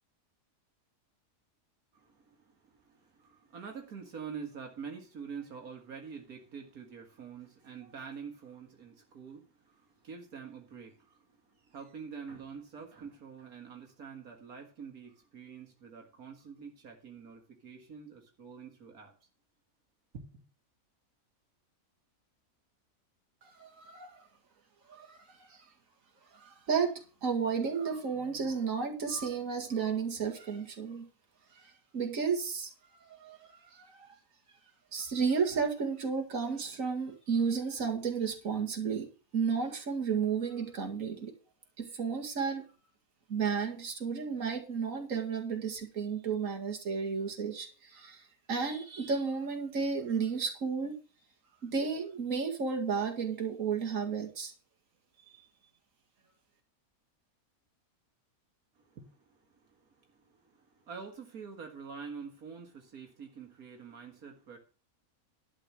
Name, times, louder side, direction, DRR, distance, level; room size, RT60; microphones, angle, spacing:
voice 1, 1.9-19.1 20.1-20.4 58.8-64.6, right 6 dB, 85° right, 2.2 m, -46 dB
voice 2, 23.4-24.3 24.9-25.7 26.3-26.9 27.2-31.1 31.6-32.7 33.0-34.2 34.9-39.1 39.3-41.3 41.8-42.6 43.3-50.9 51.6-54.5 55.3-55.4, right 5 dB, 65° right, 2.3 m, -33 dB
11.5 x 5.2 x 7.4 m
omnidirectional pair, 1.5 m